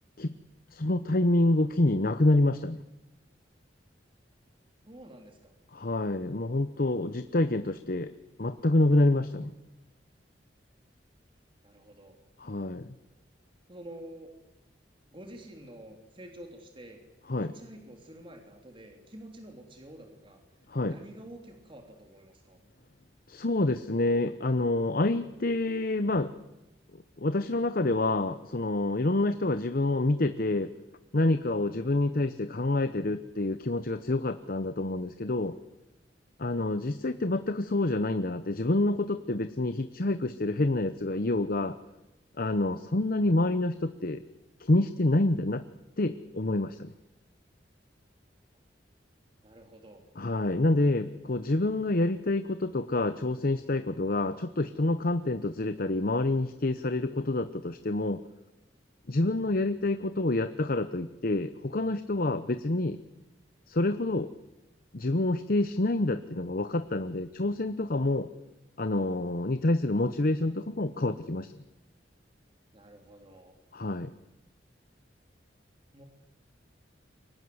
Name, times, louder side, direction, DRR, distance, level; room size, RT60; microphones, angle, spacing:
voice 1, 0.7-2.8 5.7-8.1 8.4-9.5 12.4-12.9 17.3-17.5 20.7-21.0 23.3-26.3 27.2-30.7 31.1-35.6 36.4-41.8 42.4-44.2 44.6-45.6 46.0-46.9 50.2-58.2 59.1-63.0 63.7-64.3 64.9-68.3 68.8-71.5 73.7-74.1, left 2 dB, 55° left, 10 dB, 0.9 m, -27 dB
voice 2, 4.8-5.5 8.0-8.2 9.1-9.2 11.6-12.2 13.7-14.3 15.1-17.0 17.4-20.4 20.8-22.6 31.8-31.9 36.4-36.7 49.4-50.0 59.2-59.3 72.7-73.5 75.9-76.0, right 1 dB, 30° right, 3 dB, 3.3 m, -48 dB
29.0 x 24.0 x 8.0 m, 1.0 s
head